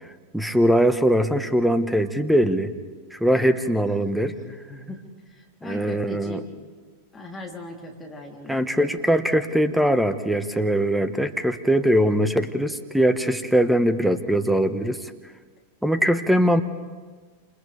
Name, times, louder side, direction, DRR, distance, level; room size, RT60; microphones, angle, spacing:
voice 1, 0.3-2.7 3.1-4.3 5.6-6.4 8.5-15.1 15.8-16.6, equal, ahead, 11 dB, 1.4 m, -21 dB
voice 2, 4.3-5.0 5.3-6.5 7.1-8.9, left 1 dB, 15° left, -1 dB, 3.5 m, -39 dB
29.5 x 28.5 x 3.5 m, 1.5 s
figure-of-eight pair, 90°, 0 cm